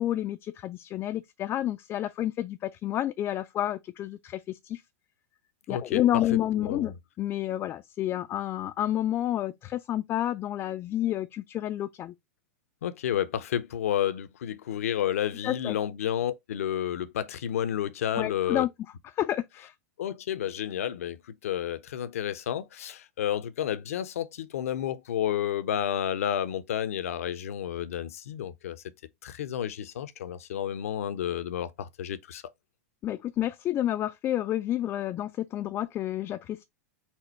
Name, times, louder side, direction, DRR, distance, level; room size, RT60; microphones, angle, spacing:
voice 1, 0.0-4.8 5.7-12.1 15.4-15.8 18.2-18.7 19.1-19.7 33.0-36.6, left 12 dB, 30° left, 0.3 m, -30 dB
voice 2, 5.7-6.0 6.6-6.9 12.8-18.7 20.0-28.8 29.2-32.4, left 10 dB, 75° left, 0.6 m, -31 dB
4.2 x 2.1 x 4.3 m
hypercardioid pair, 105°, 8 cm